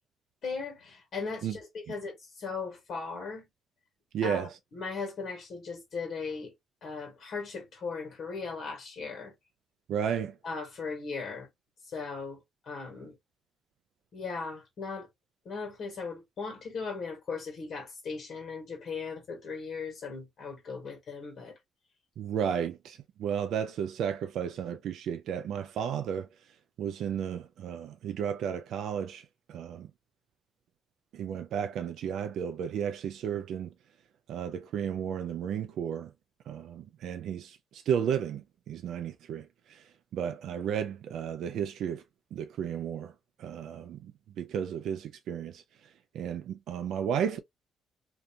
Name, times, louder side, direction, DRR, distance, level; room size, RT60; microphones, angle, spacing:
voice 1, 0.4-3.5 4.2-6.5 6.8-9.3 10.4-11.5 11.9-12.4 12.6-13.2 14.1-15.1 15.4-21.6, left 4 dB, 60° left, 1.3 m, -38 dB
voice 2, 4.1-4.6 9.9-10.4 22.2-26.3 26.8-29.9 31.1-33.7 34.3-36.1 36.5-42.0 42.3-43.1 43.4-44.1 44.4-45.6 46.1-47.4, right 8 dB, 75° right, 0.3 m, -33 dB
2.6 x 2.3 x 2.7 m
cardioid pair, 90°, 0 cm